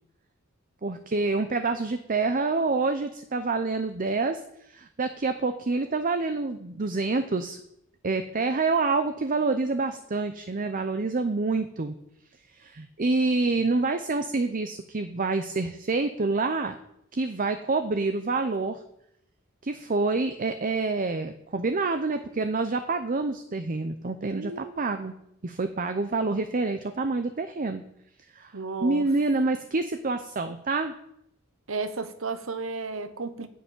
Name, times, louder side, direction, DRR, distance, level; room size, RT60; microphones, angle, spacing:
voice 1, 0.8-4.4 4.7-7.6 8.0-12.0 12.5-16.8 17.1-18.8 19.6-25.1 25.4-27.8 28.3-28.5 28.8-31.0, right 3 dB, 40° right, 9 dB, 0.7 m, -27 dB
voice 2, 24.2-24.8 28.5-29.1 31.7-33.5, right 3 dB, 70° right, 11 dB, 1.1 m, -33 dB
10.0 x 6.9 x 9.1 m, 0.79 s
head